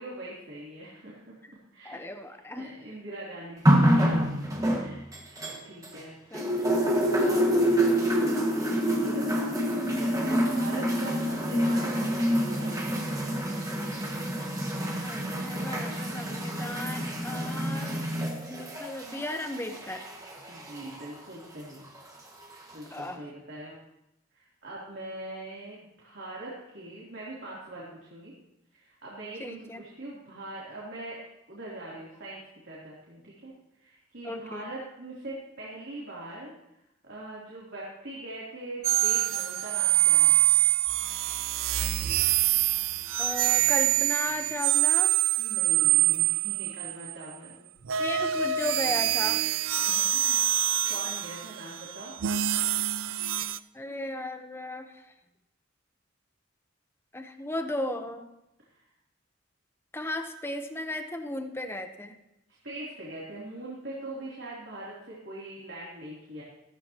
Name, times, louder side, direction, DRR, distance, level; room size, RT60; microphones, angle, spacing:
voice 1, 0.0-1.3 1.7-2.0 2.6-4.4 4.7-6.1 7.2-8.1 8.4-12.8 20.5-21.9 22.7-23.8 24.3-28.3 28.7-31.2 31.5-33.5 33.8-36.5 37.0-40.4 45.4-47.7 49.8-50.4 50.8-52.1 58.7-58.8 62.5-66.4, right 1 dB, 60° right, -6 dB, 3.4 m, -42 dB
voice 2, 1.8-2.7 6.3-6.6 6.9-7.1 15.0-20.1 22.9-23.3 29.4-29.8 34.2-34.7 43.2-45.1 48.0-49.5 53.7-55.1 57.1-58.3 59.9-62.1, left 1 dB, 10° left, 6 dB, 1.0 m, -36 dB
sound 1, 3.7-6.0 6.3-21.1 22.0-22.1, equal, 20° right, 1.8 m, -27 dB
sound 2, 38.8-47.1 47.8-53.6, right 14 dB, 85° right, 0.5 m, -25 dB
15.0 x 14.0 x 3.0 m, 0.91 s
head